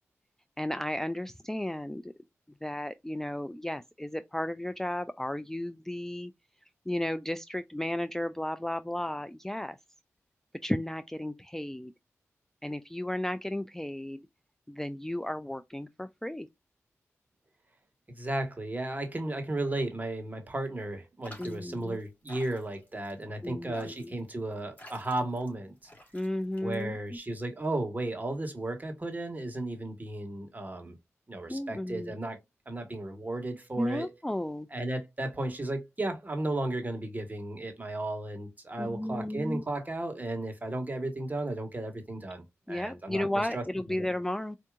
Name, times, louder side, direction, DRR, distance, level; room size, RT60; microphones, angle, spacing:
voice 1, 0.6-2.1 2.6-6.3 6.9-9.8 10.6-11.9 12.6-14.3 14.7-16.5 21.4-22.0 23.4-24.1 26.1-27.2 31.5-32.1 33.8-34.7 38.8-39.6 42.7-44.6, left 1 dB, 5° left, 0.3 m, -34 dB
voice 2, 18.1-25.9 26.6-31.0 31.3-32.4 32.7-34.1 34.7-44.1, right 2 dB, 30° right, 1.5 m, -34 dB
sound 1, 21.2-27.2, equal, 30° left, 2.4 m, -52 dB
4.4 x 2.8 x 2.4 m
cardioid pair, 45°, 6 cm